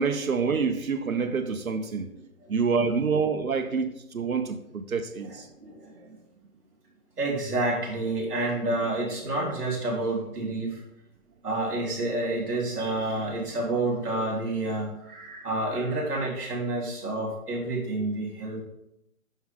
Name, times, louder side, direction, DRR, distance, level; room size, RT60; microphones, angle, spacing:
voice 1, 0.0-2.1 2.5-5.5, right 5 dB, 65° right, 7 dB, 0.8 m, -27 dB
voice 2, 5.2-6.2 7.2-10.8 11.4-18.6, right 2 dB, 5° right, -20 dB, 1.0 m, -29 dB
6.2 x 5.7 x 3.5 m, 0.80 s
figure-of-eight pair, 170°, 45 cm